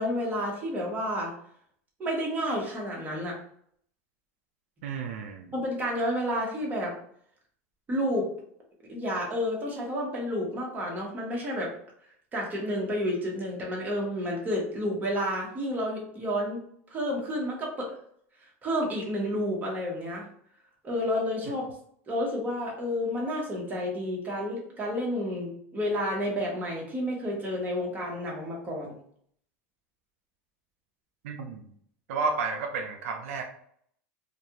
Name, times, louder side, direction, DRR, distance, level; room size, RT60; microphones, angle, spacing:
voice 1, 0.0-1.3 2.0-3.4 5.5-6.9 7.9-8.3 8.9-11.7 12.3-16.6 16.9-17.9 18.6-20.3 20.8-21.7 22.1-29.0, equal, 25° right, -2 dB, 1.0 m, -30 dB
voice 2, 4.8-5.5 31.2-31.6 32.1-33.4, right 4 dB, 85° right, 4 dB, 0.4 m, -31 dB
2.4 x 2.2 x 2.8 m, 0.65 s
supercardioid pair, 120°, 7 cm